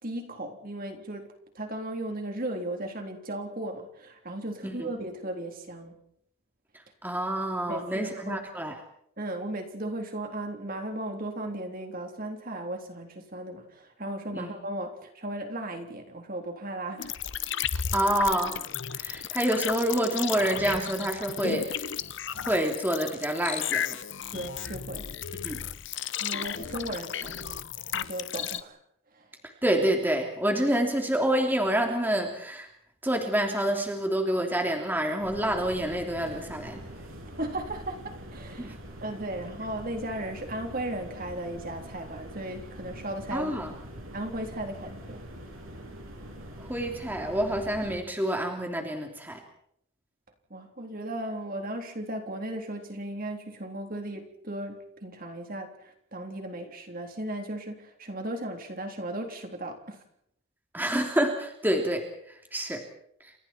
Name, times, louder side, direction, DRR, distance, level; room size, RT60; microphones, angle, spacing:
voice 1, 0.0-6.0 7.7-8.4 9.2-17.2 24.3-25.1 26.2-27.6 27.9-28.8 29.1-29.3 37.4-38.7 39.0-43.5 44.1-45.3 50.5-60.0, right 1 dB, 40° right, 4 dB, 3.7 m, -36 dB
voice 2, 7.0-8.7 14.3-14.5 17.9-18.6 18.9-21.9 22.4-24.0 25.4-25.6 29.6-32.7 33.0-36.8 38.6-38.8 43.3-43.7 46.7-49.4 60.7-62.0 62.5-62.8, right 1 dB, 10° right, 2 dB, 3.2 m, -27 dB
sound 1, 17.0-28.6, left 8 dB, 55° left, 1.0 m, -34 dB
sound 2, 35.2-48.0, equal, 75° right, 7.3 m, -44 dB
29.5 x 28.0 x 4.6 m, 0.71 s
head